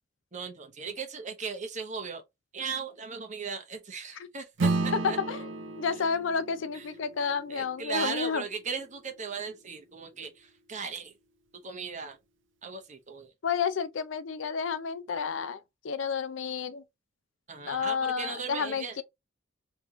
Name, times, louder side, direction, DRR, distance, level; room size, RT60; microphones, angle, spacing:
voice 1, 0.3-2.2 2.5-5.2 6.7-7.0 7.5-11.1 11.5-12.2 12.6-13.3 17.5-19.0, right 5 dB, 40° right, 1.1 m, -37 dB
Acoustic guitar / Strum, 4.6-9.4, right 3 dB, 65° right, 0.7 m, -34 dB
voice 2, 5.0-5.4 5.8-8.4 13.4-16.8 17.7-19.0, left 6 dB, 65° left, 0.5 m, -31 dB
3.4 x 3.0 x 3.7 m
head